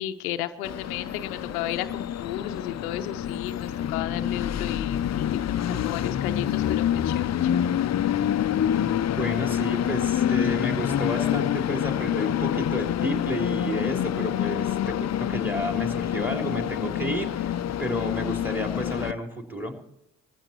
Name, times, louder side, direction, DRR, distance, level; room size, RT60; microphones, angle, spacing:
voice 1, 0.0-7.6, left 12 dB, 90° left, 9 dB, 0.7 m, -34 dB
Train, 0.6-19.1, left 10 dB, 40° left, 0.6 m, -27 dB
voice 2, 9.2-19.7, equal, 5° right, 3 dB, 3.6 m, -31 dB
20.5 x 14.5 x 3.0 m, 0.81 s
hypercardioid pair, 40°, 42 cm